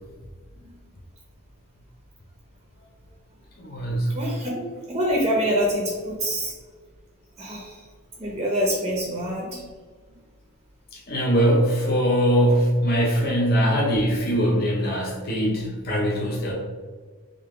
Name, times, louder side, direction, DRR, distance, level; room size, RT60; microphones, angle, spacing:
voice 1, 3.6-4.2 10.9-16.5, equal, 45° left, -2 dB, 0.6 m, -22 dB
voice 2, 4.1-4.6 4.9-6.5 7.4-7.8 8.2-9.7 10.1-10.2, equal, 25° right, -3 dB, 0.6 m, -25 dB
3.7 x 2.5 x 3.5 m, 1.5 s
head